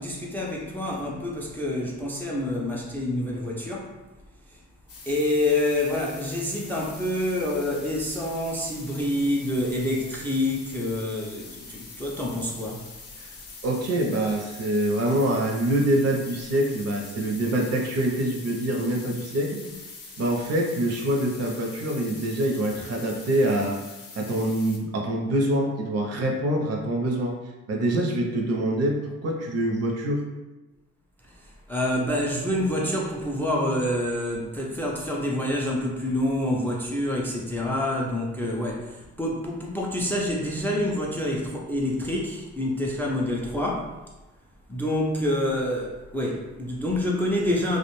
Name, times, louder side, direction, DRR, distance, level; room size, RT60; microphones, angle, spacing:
voice 1, 0.0-3.9 5.1-12.8 31.7-43.9 44.7-47.8, left 1 dB, 5° left, -2 dB, 0.3 m, -27 dB
sound 1, 4.9-24.8, left 4 dB, 50° left, 0.6 m, -44 dB
voice 2, 13.6-19.6 20.2-23.8 24.2-27.4 27.7-30.2, right 1 dB, 55° right, 1 dB, 0.6 m, -25 dB
2.4 x 2.1 x 3.0 m, 1.1 s
cardioid pair, 90°, 30 cm